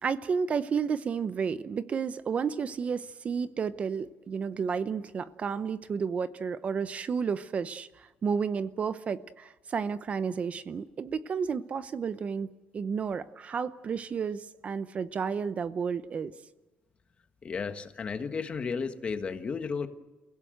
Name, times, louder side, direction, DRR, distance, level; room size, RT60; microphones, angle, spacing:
voice 1, 0.0-12.5 12.7-16.3, right 6 dB, 35° right, 14 dB, 0.7 m, -31 dB
voice 2, 17.4-19.9, left 5 dB, 30° left, 8 dB, 1.5 m, -33 dB
29.5 x 16.5 x 7.9 m, 1.1 s
cardioid pair, 150°, 4 cm